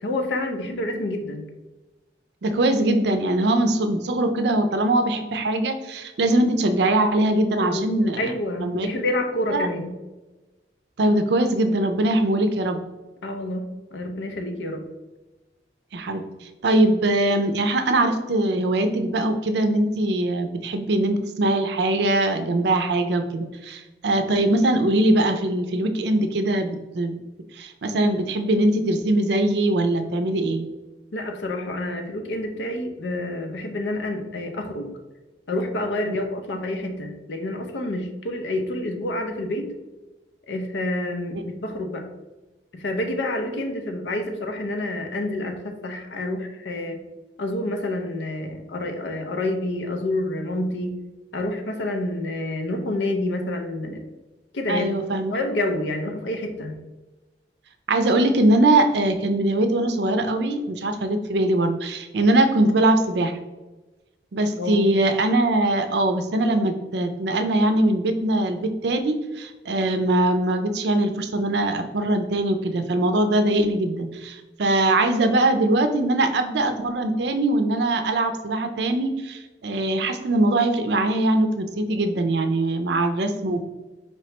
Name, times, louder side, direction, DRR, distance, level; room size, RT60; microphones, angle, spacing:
voice 1, 0.0-1.5 7.6-7.9 8.2-9.9 13.2-14.9 31.1-34.9 35.5-39.7 40.5-42.1 42.7-47.0 47.4-51.0 51.3-54.0 54.5-54.9 55.3-56.8 64.6-64.9, left 1 dB, 85° left, 5 dB, 0.6 m, -28 dB
voice 2, 2.4-8.3 8.6-8.9 9.5-9.7 11.0-12.8 15.9-16.2 16.6-27.2 27.5-30.7 36.1-36.2 54.7-55.3 57.9-63.3 64.3-83.6, right 1 dB, 70° right, 7 dB, 0.5 m, -22 dB
4.5 x 2.9 x 3.2 m, 1.1 s
head